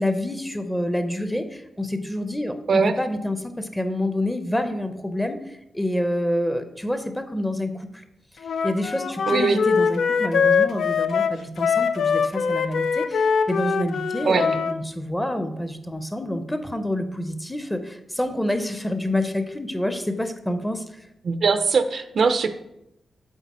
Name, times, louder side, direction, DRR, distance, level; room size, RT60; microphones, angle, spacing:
voice 1, 0.0-8.0 8.4-21.0, left 1 dB, 5° left, 8 dB, 0.6 m, -27 dB
Wind instrument woodwind instrument, 8.4-14.8, left 6 dB, 75° left, 0.4 m, -23 dB
voice 2, 9.3-9.6 14.2-14.5 21.2-22.5, right 5 dB, 60° right, 10 dB, 0.5 m, -21 dB
8.1 x 4.0 x 4.2 m, 0.82 s
wide cardioid pair, 120°, 0 cm